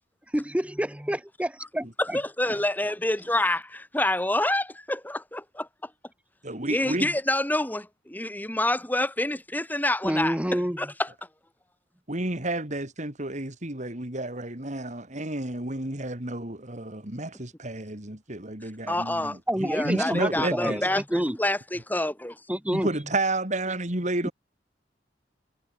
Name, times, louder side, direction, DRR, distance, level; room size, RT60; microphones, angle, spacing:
voice 1, 0.3-2.2 10.0-10.9 19.5-21.4 22.5-22.9 24.2-24.3, equal, 5° right, 1.5 m, -28 dB
voice 2, 2.0-5.7 6.7-11.1 18.9-19.4 19.6-22.4, left 1 dB, 10° left, 3.7 m, -27 dB
voice 3, 6.4-7.1 12.1-20.8 22.7-24.3, right 2 dB, 40° right, 3.8 m, -31 dB
head